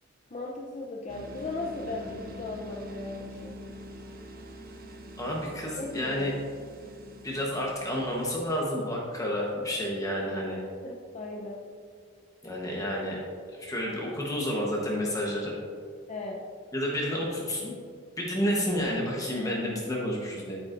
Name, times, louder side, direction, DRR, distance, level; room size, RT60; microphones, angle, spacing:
voice 1, 0.3-3.6 5.8-6.4 10.8-11.6 16.1-16.4, left 2 dB, 35° left, -1 dB, 0.6 m, -37 dB
sound 1, 1.1-8.7, equal, 50° right, 0.9 m, -45 dB
voice 2, 1.8-2.2 5.2-6.3 7.2-10.6 12.4-13.2 13.5-15.6 16.7-17.7 18.2-20.6, equal, 15° left, -3 dB, 1.0 m, -30 dB
9.3 x 8.8 x 2.6 m, 2.1 s
head